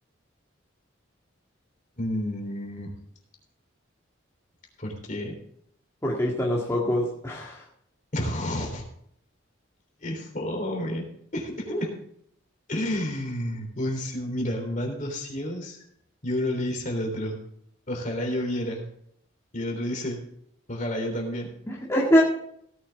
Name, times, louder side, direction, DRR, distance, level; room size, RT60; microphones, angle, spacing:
voice 1, 2.0-2.9 4.8-5.3 8.1-8.8 10.0-11.0 11.3-11.9 12.7-15.8 16.2-17.4 17.9-18.8 19.5-20.2 20.7-21.5, left 1 dB, 40° left, 2 dB, 3.5 m, -30 dB
voice 2, 6.0-7.6 21.7-22.2, equal, 15° left, -5 dB, 2.0 m, -23 dB
17.5 x 9.1 x 3.5 m, 0.68 s
head